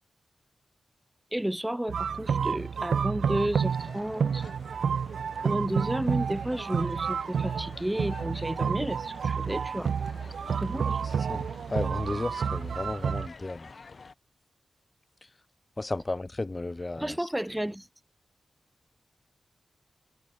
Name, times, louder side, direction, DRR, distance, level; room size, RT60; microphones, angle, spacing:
voice 1, 1.3-4.4 5.4-9.9 10.6-11.0 17.0-17.9, right 1 dB, 5° right, 0.8 m, -32 dB
sound 1, 1.9-13.3, right 6 dB, 85° right, 1.3 m, -30 dB
sound 2, 3.6-14.1, left 4 dB, 45° left, 4.7 m, -50 dB
voice 2, 11.3-13.7 15.8-17.3, left 2 dB, 25° left, 1.1 m, -34 dB
wide cardioid pair, 105°, 0 cm